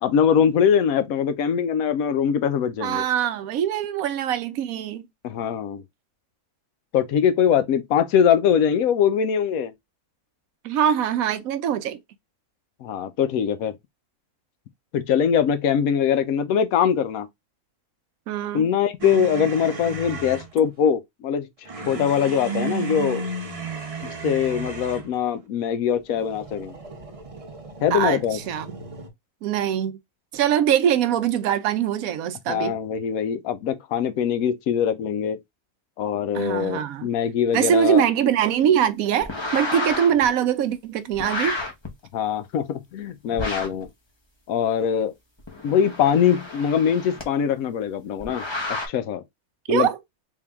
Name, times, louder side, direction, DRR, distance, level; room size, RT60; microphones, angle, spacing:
voice 1, 0.0-3.0 5.2-5.8 6.9-9.7 12.8-13.8 14.9-17.3 18.5-21.5 21.9-23.3 24.0-26.7 27.8-28.4 32.5-35.4 36.0-38.0 42.1-43.9 44.5-45.1 45.6-48.4 48.9-49.2 49.7-49.9, left 8 dB, 80° left, 1.0 m, -22 dB
voice 2, 2.8-5.0 10.6-12.0 18.3-18.7 27.9-28.2 28.5-28.8 29.4-30.0 30.3-32.7 36.3-37.1 37.5-41.6 49.7-50.0, right 9 dB, 75° right, 1.0 m, -22 dB
sound 1, 19.0-20.5 21.7-25.2 26.1-29.1, right 4 dB, 35° right, 0.6 m, -33 dB
sound 2, 39.2-40.2 41.1-41.9 43.4-43.8 45.4-47.2 48.2-48.9, left 2 dB, 25° left, 0.8 m, -30 dB
3.6 x 2.7 x 3.4 m
omnidirectional pair, 1.5 m